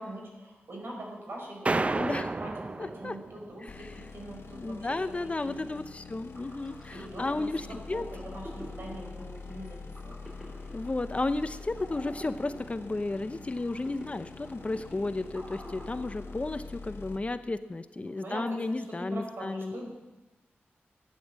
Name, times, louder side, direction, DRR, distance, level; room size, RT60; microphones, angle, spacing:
voice 1, 0.0-2.5 2.8-5.0 5.4-5.7 6.9-9.8 10.0-10.2 18.0-19.9, right 1 dB, 65° right, 0 dB, 5.1 m, -42 dB
sound 1, 1.7-3.6, right 2 dB, 30° right, 0.5 m, -31 dB
voice 2, 1.9-2.3 2.8-3.2 3.6-3.9 4.5-8.0 10.7-19.8, left 2 dB, 30° left, 11 dB, 0.6 m, -33 dB
sound 2, 3.7-17.2, left 4 dB, 90° left, 1.5 m, -45 dB
sound 3, 6.1-16.9, equal, 10° right, 4.1 m, -49 dB
14.5 x 9.9 x 7.6 m, 1.1 s
wide cardioid pair, 80°, 4 cm